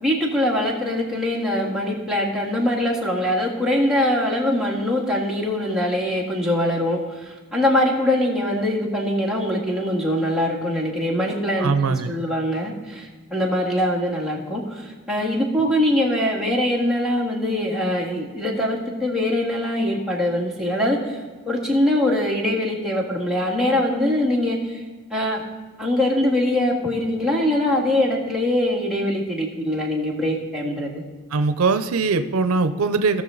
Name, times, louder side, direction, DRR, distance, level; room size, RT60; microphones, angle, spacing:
voice 1, 0.0-11.7 12.0-21.2 21.5-24.8 25.1-25.4 25.8-31.0, left 1 dB, ahead, -4 dB, 1.9 m, -22 dB
voice 2, 11.6-12.1 31.3-33.2, right 4 dB, 85° right, 10 dB, 0.6 m, -21 dB
17.5 x 6.3 x 3.9 m, 1.4 s
head